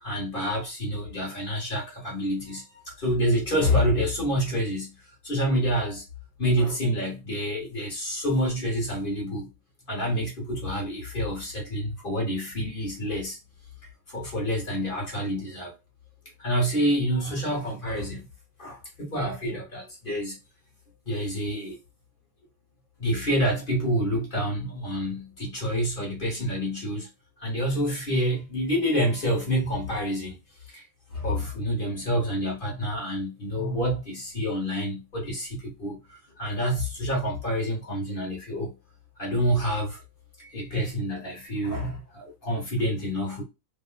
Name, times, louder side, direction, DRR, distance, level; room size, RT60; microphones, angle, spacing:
voice 1, 0.0-4.9 5.2-6.0 6.4-9.5 9.9-13.4 14.1-15.7 16.4-18.2 18.6-20.4 21.1-21.8 23.0-27.1 27.4-30.4 30.7-30.8 31.1-38.7 39.2-40.0 40.4-43.4, equal, 35° left, 1.3 m, -28 dB
3.1 x 2.3 x 3.8 m
omnidirectional pair, 1.7 m